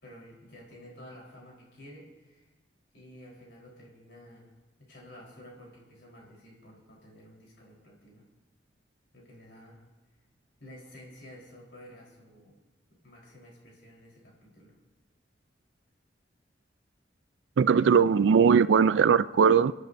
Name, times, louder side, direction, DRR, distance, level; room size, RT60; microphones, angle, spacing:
voice 1, 0.0-2.5 2.9-4.5 4.8-8.2 9.1-9.8 10.6-12.6 13.0-14.8, equal, 75° left, 4.0 m, -51 dB
voice 2, 17.6-19.7, right 6 dB, 85° right, 0.4 m, -20 dB
30.0 x 11.0 x 2.7 m
head